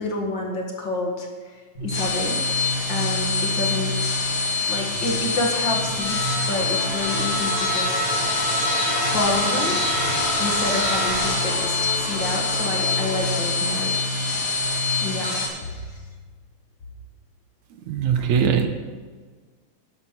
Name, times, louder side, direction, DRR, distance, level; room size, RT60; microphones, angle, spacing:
voice 1, 0.0-2.4 2.9-4.1 4.7-8.2 9.0-9.8 10.4-13.9 15.0-16.0 18.2-18.4, left 2 dB, 45° left, 1 dB, 1.8 m, -29 dB
sound 1, 1.7-15.5, left 2 dB, 25° left, 3.0 m, -24 dB
sound 2, 6.5-13.9, equal, 30° right, 4.7 m, -34 dB
voice 2, 17.9-18.7, right 7 dB, 70° right, 7 dB, 2.1 m, -20 dB
11.5 x 10.5 x 5.8 m, 1.5 s
omnidirectional pair, 3.8 m